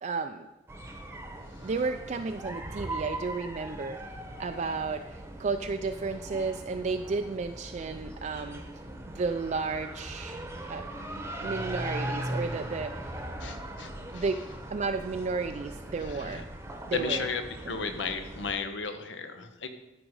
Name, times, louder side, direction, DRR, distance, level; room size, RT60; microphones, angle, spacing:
voice 1, 0.0-0.5 1.6-4.0 4.4-5.0 5.4-8.6 9.1-10.4 10.7-10.8 11.4-12.9 14.1-14.4 14.7-16.5 16.9-17.3 17.6-17.8, right 4 dB, 40° right, 6 dB, 0.4 m, -32 dB
sound 1, 0.7-18.5, right 1 dB, 15° right, 0.9 m, -39 dB
voice 2, 13.4-14.2 16.2-16.4 16.9-17.4 17.7-19.7, left 5 dB, 80° left, 8 dB, 0.9 m, -34 dB
12.5 x 5.2 x 4.8 m, 1.0 s
head